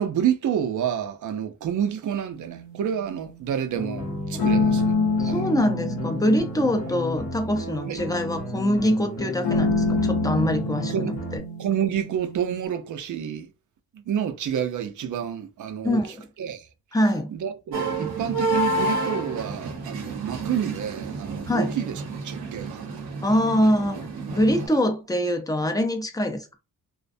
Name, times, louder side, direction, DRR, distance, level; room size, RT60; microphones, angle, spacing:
voice 1, 0.0-4.9 5.2-5.4 7.9-8.0 10.9-11.1 11.6-13.5 13.9-16.0 16.4-16.7 17.3-22.8, right 9 dB, 55° right, 0.5 m, -29 dB
sound 1, 2.3-3.3 4.4-8.4 9.4-12.6, left 3 dB, 80° left, 0.7 m, -27 dB
sound 2, 3.8-11.4, left 1 dB, 45° left, 0.7 m, -33 dB
voice 2, 5.2-11.4 15.8-16.1 16.9-17.3 21.5-21.8 23.2-24.0 24.3-26.5, equal, 10° left, 0.4 m, -24 dB
sound 3, 17.7-24.7, right 2 dB, 85° right, 0.8 m, -29 dB
2.5 x 2.1 x 2.5 m
cardioid pair, 100°, 37 cm